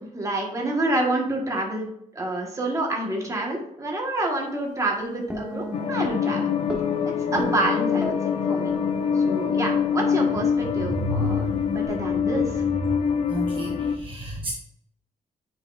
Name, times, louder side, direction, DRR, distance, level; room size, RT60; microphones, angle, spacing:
voice 1, 0.1-1.9 2.1-6.5 7.3-8.2 8.4-8.7 9.1-12.6, right 2 dB, 25° right, -1 dB, 1.6 m, -28 dB
Guitar, 5.3-11.9, left 4 dB, 5° right, 1.3 m, -34 dB
sound 1, 5.7-14.0, left 7 dB, 50° left, 0.5 m, -25 dB
voice 2, 10.8-11.5 13.3-14.5, left 1 dB, 40° right, -1 dB, 1.0 m, -29 dB
9.0 x 4.8 x 2.6 m, 0.76 s
wide cardioid pair, 160°, 14 cm